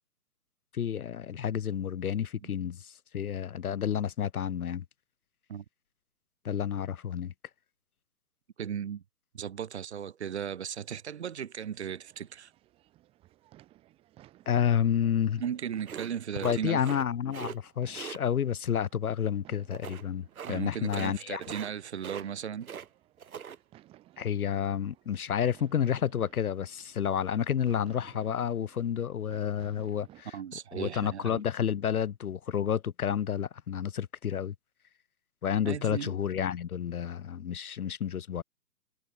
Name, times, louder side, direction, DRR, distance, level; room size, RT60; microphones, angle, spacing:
voice 1, 0.7-4.8 6.4-7.3 14.5-15.4 16.4-21.4 24.2-30.4 30.7-34.5 35.4-38.4, left 8 dB, 60° left, 0.9 m, -30 dB
voice 2, 8.6-9.0 9.3-12.5 15.4-16.8 20.4-22.7 30.3-31.4 35.6-36.2, right 8 dB, 40° right, 4.1 m, -36 dB
sound 1, 12.0-30.2, right 15 dB, 10° right, 5.4 m, -59 dB
sound 2, 15.8-17.0 17.3-17.6 17.9-18.2 19.7-20.0 20.3-20.6 20.8-21.1 21.4-21.7 22.0-22.9 23.2-23.6, right 7 dB, 60° right, 1.5 m, -41 dB
hypercardioid pair, 170°, 49 cm